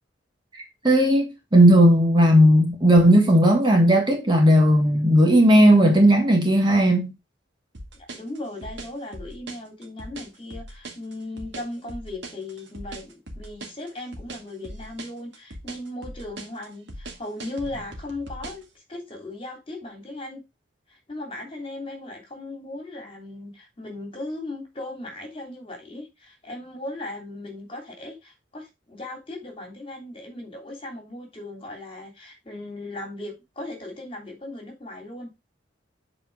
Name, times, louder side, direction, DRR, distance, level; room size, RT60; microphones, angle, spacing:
voice 1, 0.8-7.1, equal, 25° right, 1.6 m, -16 dB
sound 1, 7.7-18.7, right 1 dB, 65° right, 1.9 m, -39 dB
voice 2, 7.9-18.6 18.9-20.4 20.9-35.3, left 2 dB, 30° left, 3.0 m, -37 dB
7.8 x 4.5 x 4.8 m
head